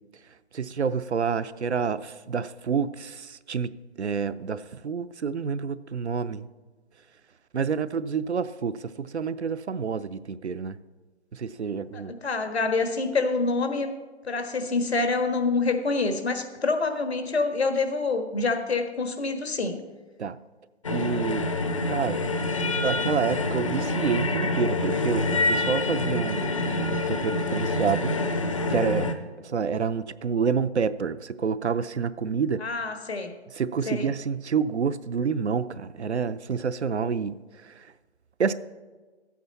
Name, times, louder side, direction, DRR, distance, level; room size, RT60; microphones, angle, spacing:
voice 1, 0.5-3.7 4.0-6.5 7.5-10.8 11.3-12.1 20.2-20.4 20.9-21.5 21.9-22.2 22.8-28.1 28.7-29.1 29.4-32.7 33.5-37.4 37.6-37.9 38.4-38.5, right 6 dB, 80° right, 13 dB, 0.6 m, -28 dB
voice 2, 11.9-13.9 14.2-19.8 32.6-33.3 33.9-34.1, left 3 dB, 70° left, 6 dB, 1.5 m, -26 dB
sound 1, 20.8-29.1, left 2 dB, 30° left, 0.6 m, -26 dB
13.0 x 8.5 x 4.1 m, 1.3 s
figure-of-eight pair, 145°, 33 cm